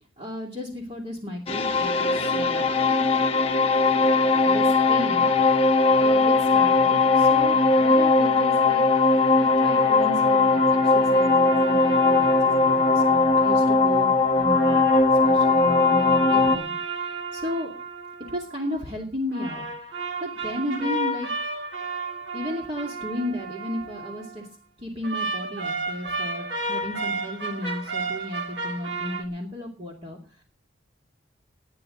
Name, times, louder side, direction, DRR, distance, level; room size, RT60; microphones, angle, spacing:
voice 1, 0.2-2.7 4.4-5.3 6.0-8.8 9.4-12.3 12.6-17.7 18.3-19.7 20.2-21.3 22.3-24.5 24.8-30.4, left 1 dB, 30° right, -2 dB, 2.5 m, -34 dB
sound 1, 1.5-16.6, left 3 dB, 30° left, 1.0 m, -19 dB
sound 2, 9.7-13.8 14.4-18.8 19.3-24.4 25.0-29.2, right 3 dB, 60° right, 1.7 m, -33 dB
19.5 x 9.8 x 3.8 m, 0.38 s
head